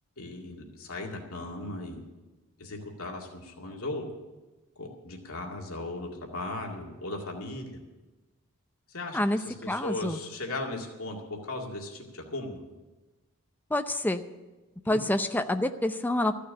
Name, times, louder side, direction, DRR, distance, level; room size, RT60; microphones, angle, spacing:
voice 1, 0.2-2.0 2.6-4.1 4.8-7.8 8.9-12.6 14.9-15.0, left 2 dB, 75° left, 0 dB, 2.2 m, -37 dB
voice 2, 9.7-10.2 13.7-14.2 14.9-16.3, left 1 dB, 10° left, 8 dB, 0.6 m, -27 dB
14.0 x 6.6 x 9.9 m, 1.2 s
head